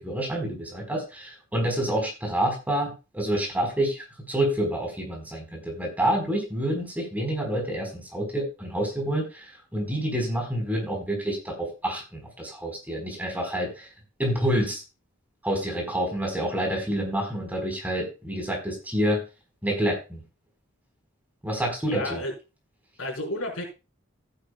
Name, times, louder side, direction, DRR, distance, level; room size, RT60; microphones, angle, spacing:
voice 1, 0.0-13.9 14.2-14.8 15.4-19.2 19.6-20.2 21.4-22.2, right 1 dB, 10° right, 1 dB, 4.1 m, -28 dB
voice 2, 21.9-22.3 23.0-23.6, left 1 dB, 90° left, 0 dB, 4.5 m, -31 dB
15.0 x 10.0 x 2.2 m, 0.29 s
head